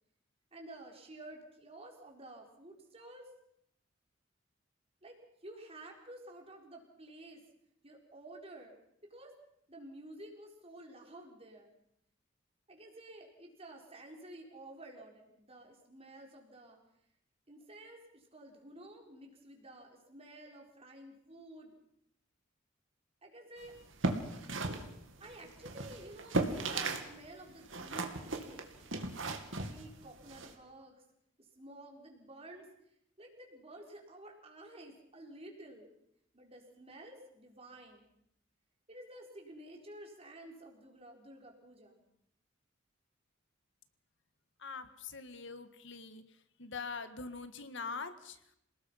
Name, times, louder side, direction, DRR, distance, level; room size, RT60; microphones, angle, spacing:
voice 1, 0.5-3.3 5.0-5.2 5.4-7.4 7.8-8.8 9.1-9.3 9.7-11.7 12.7-16.8 17.5-21.8 23.2-23.8 25.2-31.0 31.4-32.7 33.2-35.9 36.3-38.1 38.9-42.0, right 1 dB, 30° right, 1 dB, 4.6 m, -52 dB
sound 1, 23.8-27.1 27.4-30.5, right 2 dB, 75° right, 2.6 m, -36 dB
voice 2, 44.6-46.2 46.6-48.5, left 4 dB, 65° left, 10 dB, 1.7 m, -43 dB
27.5 x 19.0 x 5.8 m, 0.74 s
head